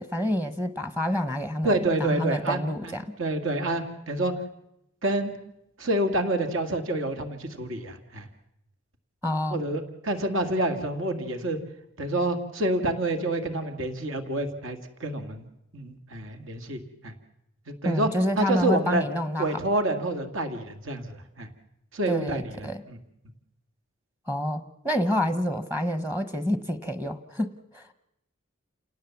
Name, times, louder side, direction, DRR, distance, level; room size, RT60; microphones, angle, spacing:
voice 1, 0.0-3.1 9.2-9.6 17.8-19.6 22.1-22.8 24.3-27.9, equal, 10° right, 10 dB, 1.0 m, -28 dB
voice 2, 1.6-2.9 3.2-4.3 5.0-5.3 5.8-8.3 9.5-11.6 12.0-15.5 15.7-17.1 17.7-18.1 18.4-19.0 19.4-21.5 21.9-23.0, right 1 dB, 70° right, 6 dB, 2.2 m, -28 dB
29.0 x 18.5 x 7.2 m, 0.85 s
head